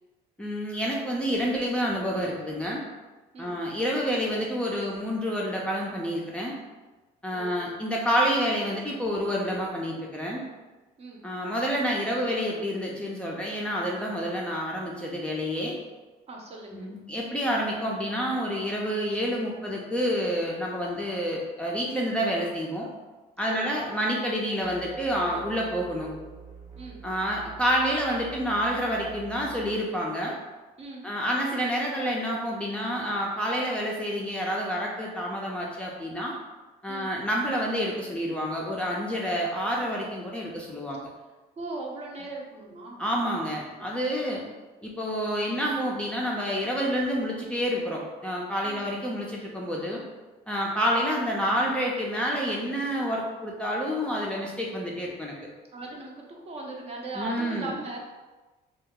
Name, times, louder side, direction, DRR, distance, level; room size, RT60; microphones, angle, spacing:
voice 1, 0.4-2.8 3.4-6.6 7.2-10.4 11.2-15.8 16.7-22.9 23.4-26.1 27.0-30.4 31.0-36.3 36.8-41.0 43.0-44.4 44.8-50.0 50.5-55.3 57.1-57.7, equal, 5° left, -4 dB, 0.4 m, -28 dB
voice 2, 16.3-16.9 23.5-23.7 26.8-27.0 30.8-31.1 36.9-37.1 41.6-43.0 48.6-48.9 55.7-58.0, right 2 dB, 40° right, -1 dB, 0.6 m, -38 dB
sound 1, 24.6-30.1, right 4 dB, 65° right, 1.0 m, -46 dB
2.6 x 2.3 x 3.6 m, 1.2 s
cardioid pair, 110°, 17 cm